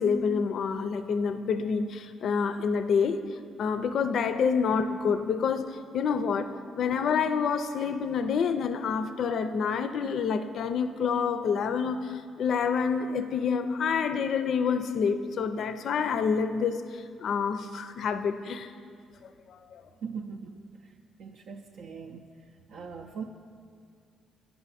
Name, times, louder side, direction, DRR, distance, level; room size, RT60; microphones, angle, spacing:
voice 1, 0.0-3.2 3.6-18.7 19.2-19.8, left 6 dB, 65° left, 10 dB, 0.4 m, -28 dB
voice 2, 20.0-20.6 21.2-22.2 22.7-23.2, right 6 dB, 75° right, 1 dB, 0.4 m, -40 dB
9.7 x 5.6 x 4.1 m, 2.2 s
cardioid pair, 90°, 0 cm